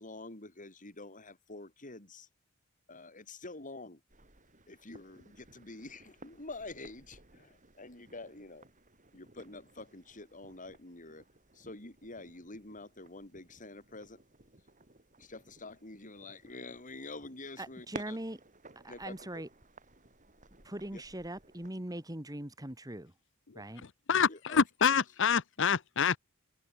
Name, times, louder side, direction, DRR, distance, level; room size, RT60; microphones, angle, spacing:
voice 1, 0.0-2.3 2.9-4.0 4.7-8.7 9.1-11.2 11.5-14.2 15.2-18.2 18.9-19.2 20.9-21.0 24.3-24.6, left 2 dB, 40° left, 4.1 m, -47 dB
sound 1, 4.1-21.7, right 2 dB, 40° right, 6.3 m, -55 dB
voice 2, 17.6-18.4 18.8-19.5 20.6-23.1 23.5-23.8, right 1 dB, 20° right, 2.6 m, -41 dB
voice 3, 24.1-26.2, left 6 dB, 60° left, 0.9 m, -27 dB
head